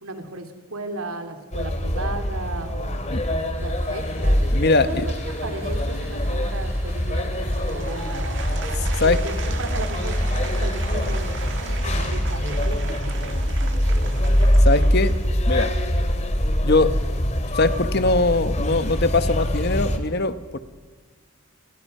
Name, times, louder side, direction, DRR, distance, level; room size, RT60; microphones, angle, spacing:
voice 1, 0.0-4.4 4.8-5.1 5.4-8.3 9.0-14.1, right 2 dB, 80° right, 6 dB, 3.0 m, -36 dB
sound 1, 1.5-20.0, equal, 35° left, 2.3 m, -23 dB
sound 2, 3.5-11.9, right 1 dB, 10° right, 7.9 m, -47 dB
voice 2, 4.5-5.0 8.8-9.2 14.6-15.1 15.5-15.7 16.6-16.9 17.5-20.6, left 3 dB, 50° left, 11 dB, 1.1 m, -21 dB
Applause / Crowd, 7.5-15.7, right 5 dB, 55° right, 2.0 m, -38 dB
29.5 x 28.5 x 5.6 m, 1.5 s
head